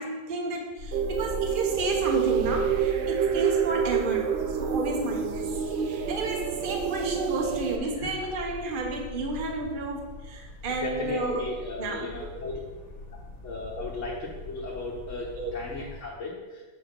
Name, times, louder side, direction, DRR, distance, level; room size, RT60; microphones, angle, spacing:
voice 1, 0.0-5.5 5.9-11.4 11.8-12.3 15.3-15.5 15.8-15.9, right 2 dB, 40° right, 1 dB, 1.1 m, -32 dB
sound 1, 0.8-16.0, left 2 dB, 80° left, 1.6 m, -41 dB
sound 2, 0.9-7.8, right 8 dB, 65° right, 0.7 m, -28 dB
voice 2, 8.0-8.3 10.8-12.6 13.4-16.6, left 3 dB, 60° left, -6 dB, 1.4 m, -36 dB
5.7 x 4.9 x 6.4 m, 1.2 s
omnidirectional pair, 1.5 m